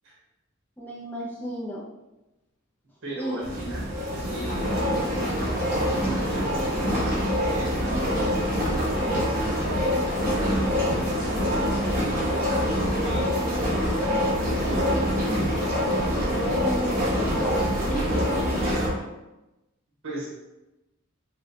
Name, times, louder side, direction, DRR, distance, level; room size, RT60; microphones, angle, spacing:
voice 1, 0.8-1.9 3.1-3.4 16.3-18.8, equal, 10° left, -5 dB, 0.4 m, -33 dB
voice 2, 3.0-3.9 4.2-5.4 5.9-15.1 18.6-18.9 20.0-20.3, right 2 dB, 65° right, -6 dB, 1.4 m, -38 dB
sound 1, 3.4-18.9, equal, 45° right, 1.1 m, -25 dB
4.7 x 2.1 x 2.8 m, 0.99 s
head